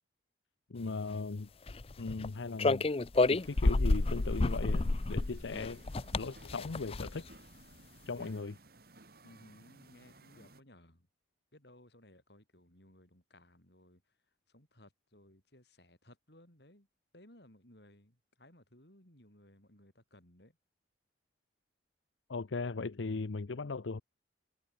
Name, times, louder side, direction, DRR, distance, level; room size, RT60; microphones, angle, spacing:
voice 1, 0.7-1.5 2.0-2.9 3.3-5.8 6.1-7.2 8.1-8.6 22.3-24.0, left 3 dB, 90° left, 0.7 m, -38 dB
sound 1, 1.7-2.3 2.6-7.3, left 2 dB, 30° left, 0.5 m, -30 dB
sound 2, 3.1-10.6, right 2 dB, 55° right, 3.2 m, -58 dB
voice 2, 9.2-11.1 11.5-14.0 14.5-16.9 17.1-20.5, left 1 dB, 65° left, 7.1 m, -60 dB
head